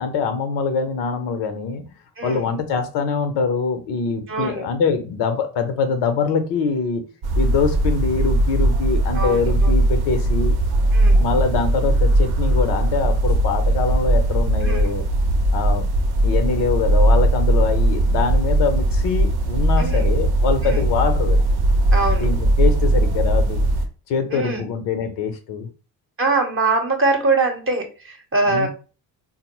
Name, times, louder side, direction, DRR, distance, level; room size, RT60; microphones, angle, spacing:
voice 1, 0.0-1.8 2.2-7.0 7.4-10.6 11.2-15.0 15.5-15.8 16.2-21.4 22.2-23.6 24.1-25.7 28.5-28.7, left 5 dB, 55° left, 8 dB, 0.7 m, -23 dB
voice 2, 2.2-2.5 4.3-4.7 9.1-9.7 10.9-11.3 14.6-14.9 19.8-20.1 20.6-20.9 21.9-22.3 24.3-24.6 26.2-28.7, right 3 dB, 25° right, 3 dB, 0.9 m, -23 dB
sound 1, 7.2-23.9, right 1 dB, 50° right, 0.7 m, -19 dB
3.6 x 2.0 x 2.9 m, 0.34 s
figure-of-eight pair, 45°, 49 cm